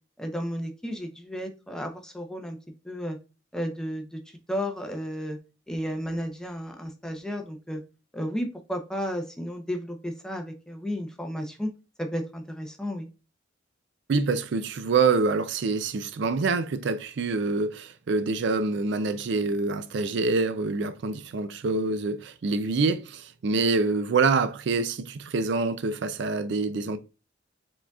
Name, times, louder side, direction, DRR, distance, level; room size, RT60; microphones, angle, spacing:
voice 1, 0.2-2.6 2.8-3.2 3.5-4.2 4.5-5.4 5.7-7.8 8.1-11.7 12.0-13.1, equal, 5° left, 0.6 m, -33 dB
voice 2, 14.1-27.0, right 4 dB, 60° right, 0.4 m, -26 dB
4.8 x 3.8 x 2.3 m
head